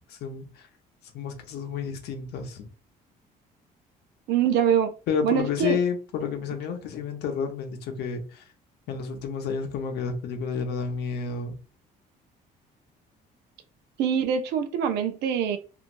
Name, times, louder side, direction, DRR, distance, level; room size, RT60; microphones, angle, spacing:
voice 1, 0.1-0.7 1.1-2.7 5.1-8.4 8.9-11.6, left 6 dB, 75° left, 0.8 m, -30 dB
voice 2, 4.3-4.9 5.2-5.8 14.0-15.6, right 8 dB, 80° right, 0.5 m, -24 dB
3.0 x 2.5 x 2.5 m
cardioid pair, 110°, 17 cm